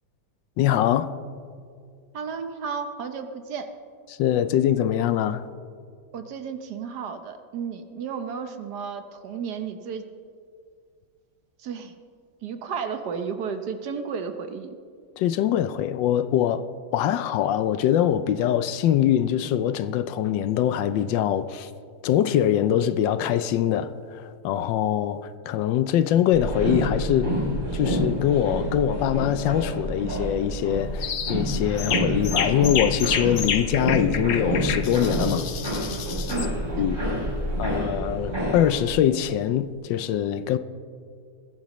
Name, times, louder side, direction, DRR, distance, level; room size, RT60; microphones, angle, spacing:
voice 1, 0.6-1.1 4.2-5.5 15.2-16.7 16.9-21.7 22.0-27.3 27.7-35.5 36.8-37.0 37.6-40.6, left 10 dB, 80° left, 1.3 m, -23 dB
voice 2, 2.1-3.7 6.1-10.1 11.6-11.9 12.4-14.8 36.3-36.8, right 6 dB, 65° right, 1.4 m, -33 dB
sound 1, 26.3-38.9, equal, 25° right, 4.6 m, -28 dB
sound 2, 31.0-31.4 31.8-36.5, left 7 dB, 60° left, 1.2 m, -29 dB
21.0 x 15.0 x 3.1 m
omnidirectional pair, 2.0 m